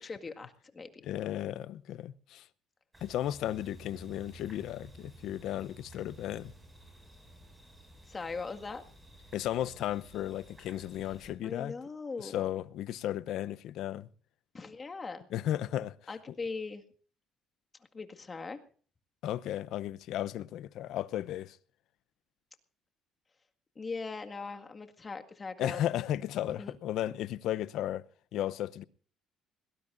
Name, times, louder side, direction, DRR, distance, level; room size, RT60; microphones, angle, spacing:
voice 1, 0.0-0.9 8.1-8.8 11.4-12.4 14.5-15.3 16.1-16.9 17.9-18.6 23.8-25.8 26.5-26.7, left 4 dB, 25° left, 1.9 m, -40 dB
voice 2, 1.0-2.5 3.0-6.5 9.3-11.7 12.2-14.1 15.3-15.9 19.2-21.6 25.6-28.0 28.3-28.8, left 12 dB, 70° left, 0.7 m, -34 dB
sound 1, 2.9-11.3, right 1 dB, 10° right, 6.4 m, -54 dB
21.5 x 19.0 x 2.6 m
cardioid pair, 105°, 0 cm